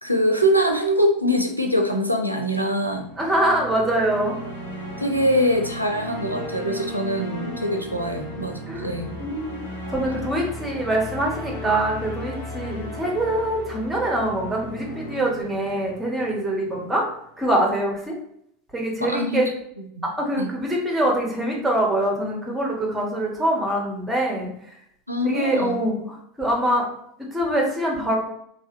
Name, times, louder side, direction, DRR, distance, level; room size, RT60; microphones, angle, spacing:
voice 1, 0.0-3.1 5.0-9.2 19.0-19.4 20.0-20.1 20.4-20.5 25.1-25.8, equal, 90° right, 4 dB, 0.4 m, -23 dB
sound 1, 2.8-17.0, left 1 dB, 65° left, 0.6 m, -36 dB
voice 2, 3.2-4.3 8.7-8.9 9.2-9.6 9.9-17.0 17.4-18.1 18.7-19.5 20.0-24.5 25.2-26.8 27.2-28.2, right 1 dB, 10° right, -1 dB, 1.0 m, -24 dB
3.3 x 2.7 x 2.5 m, 0.71 s
figure-of-eight pair, 80°, 0 cm